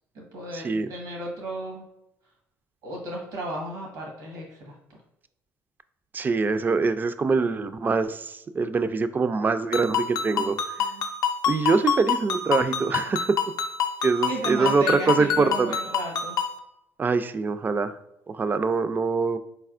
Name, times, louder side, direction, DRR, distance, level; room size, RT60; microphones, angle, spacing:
voice 1, 0.1-1.9 2.8-4.8 10.3-11.1 14.3-16.4, right 2 dB, 85° right, -2 dB, 1.1 m, -34 dB
voice 2, 6.1-10.5 11.5-13.3 14.0-15.7 17.0-17.9 18.3-19.4, right 4 dB, 25° right, 11 dB, 0.3 m, -24 dB
Ringtone, 9.7-16.6, left 7 dB, 60° left, 0.6 m, -27 dB
4.1 x 3.3 x 2.4 m, 0.85 s
supercardioid pair, 80°, 7 cm